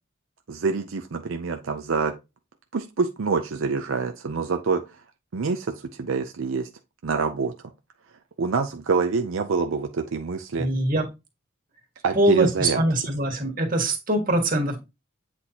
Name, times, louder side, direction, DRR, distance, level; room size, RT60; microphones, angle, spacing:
voice 1, 0.5-2.1 2.7-5.0 5.3-6.7 7.0-7.5 8.4-10.7 12.0-12.8, right 4 dB, 80° right, 6 dB, 0.6 m, -26 dB
voice 2, 10.6-11.1 12.2-14.8, right 1 dB, 45° right, 3 dB, 1.7 m, -23 dB
8.1 x 4.2 x 2.9 m, 0.25 s
head